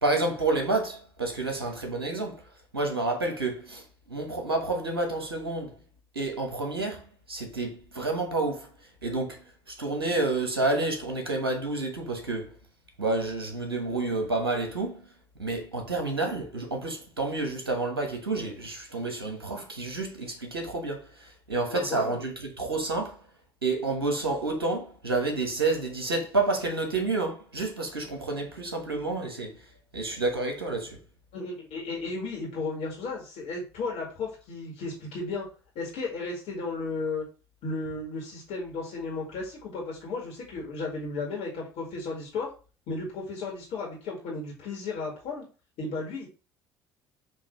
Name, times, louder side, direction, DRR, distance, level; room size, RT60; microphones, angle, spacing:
voice 1, 0.0-2.4 2.7-5.8 6.1-8.7 9.0-12.5 13.0-15.1 15.4-23.2 23.6-29.5 29.9-31.0, right 3 dB, 80° right, 1.4 m, -29 dB
voice 2, 21.7-22.2 31.3-35.5 35.8-37.2 37.6-42.5 42.9-45.5 45.8-46.3, left 3 dB, 55° left, 2.0 m, -34 dB
7.0 x 3.1 x 4.4 m
figure-of-eight pair, 55°, 12 cm